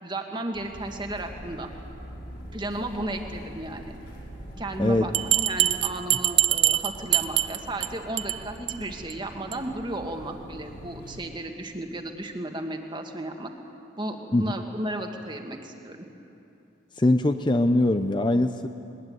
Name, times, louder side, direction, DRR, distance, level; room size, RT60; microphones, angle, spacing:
voice 1, 0.0-1.7 2.5-3.9 4.6-13.5 14.0-16.1, right 1 dB, 25° right, 4 dB, 1.7 m, -34 dB
sound 1, 0.5-11.2, equal, 65° left, 5.4 m, -43 dB
voice 2, 4.8-5.1 14.3-14.5 17.0-18.7, left 1 dB, 25° left, 8 dB, 0.6 m, -22 dB
Bell, 5.1-7.9 8.2-8.4 8.7-8.8 9.1-9.2 9.5-9.6, right 13 dB, 60° right, 0.7 m, -23 dB
21.0 x 19.5 x 9.5 m, 2.7 s
head